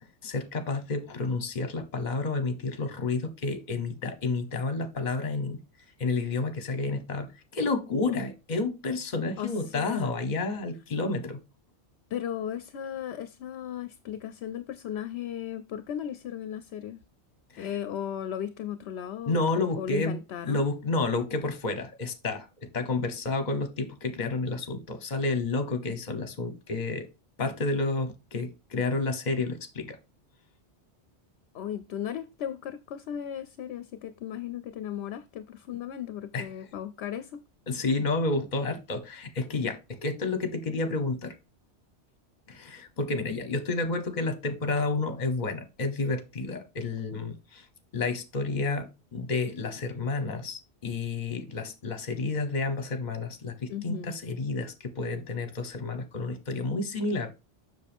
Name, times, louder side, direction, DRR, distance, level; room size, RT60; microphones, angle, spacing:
voice 1, 0.2-5.6 6.0-11.4 17.5-17.7 19.3-20.2 20.5-27.1 27.4-30.0 36.3-36.5 37.7-41.3 42.5-47.6 47.9-57.3, left 3 dB, 40° left, 1.1 m, -30 dB
voice 2, 9.4-10.1 12.1-17.0 17.6-20.6 31.5-37.4 53.7-54.1, left 10 dB, 70° left, 0.8 m, -36 dB
7.5 x 6.2 x 3.5 m
omnidirectional pair, 1.2 m